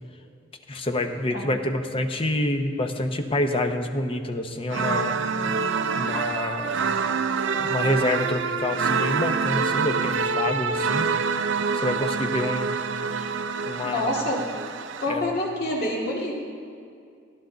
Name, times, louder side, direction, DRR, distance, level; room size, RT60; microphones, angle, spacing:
voice 1, 0.7-5.2 6.0-6.8 7.6-11.1 11.7-12.7 13.1-13.3 13.6-14.2 15.1-15.3, left 1 dB, 30° left, 5 dB, 0.7 m, -27 dB
sound 1, 4.7-15.1, right 5 dB, 65° right, 0.5 m, -26 dB
voice 2, 13.8-14.4 15.0-16.4, left 1 dB, 50° left, -3 dB, 2.1 m, -27 dB
14.0 x 11.0 x 3.9 m, 2.3 s
head